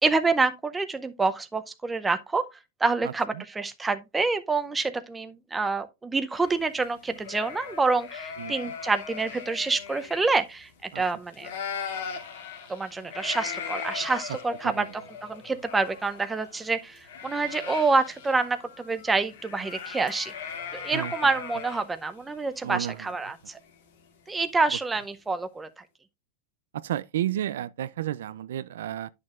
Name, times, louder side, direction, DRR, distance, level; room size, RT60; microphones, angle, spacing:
voice 1, 0.0-2.4 2.8-11.5 12.7-20.3 20.7-23.6 24.3-25.7, right 3 dB, 10° right, 0.6 m, -27 dB
voice 2, 3.0-3.4 8.4-8.7 10.9-11.0 14.6-14.9 20.9-21.1 22.6-23.1 26.7-29.1, right 12 dB, 80° right, 0.4 m, -32 dB
sound 1, 6.3-11.1 11.3-24.2, left 7 dB, 70° left, 2.4 m, -39 dB
10.5 x 6.4 x 2.4 m
supercardioid pair, 160°, 0 cm